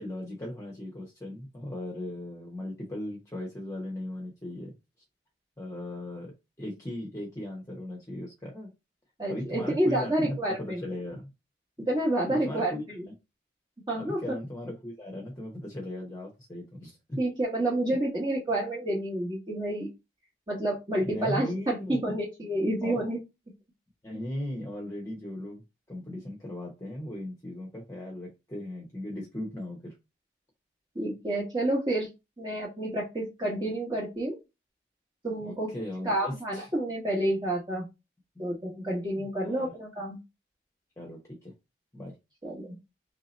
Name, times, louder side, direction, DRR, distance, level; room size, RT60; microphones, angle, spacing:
voice 1, 0.0-4.7 5.6-6.3 6.6-8.7 9.3-11.3 12.3-12.8 14.0-17.2 21.0-22.2 22.8-23.1 24.0-25.6 25.9-29.9 35.4-36.7 38.8-38.9 39.2-39.7 41.0-41.5 41.9-42.2, left 1 dB, 15° left, -1 dB, 0.8 m, -37 dB
voice 2, 9.2-10.8 11.9-13.0 13.9-14.2 17.2-19.9 20.5-23.2 30.9-32.1 32.4-34.4 35.2-35.7 36.0-37.9 38.4-40.2 42.4-42.7, right 1 dB, 25° right, -5 dB, 1.0 m, -29 dB
3.2 x 2.8 x 3.9 m, 0.25 s
head